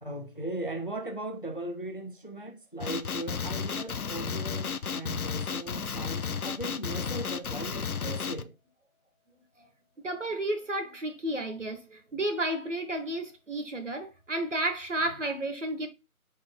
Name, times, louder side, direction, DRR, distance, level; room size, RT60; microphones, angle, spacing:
voice 1, 0.0-8.5, right 1 dB, 35° left, 0.7 m, -38 dB
Male speech man speaking, 2.8-8.4, left 6 dB, 75° left, 0.7 m, -33 dB
voice 2, 10.0-15.9, right 1 dB, 55° right, 1.3 m, -32 dB
4.7 x 4.6 x 4.4 m
figure-of-eight pair, 175°, 44 cm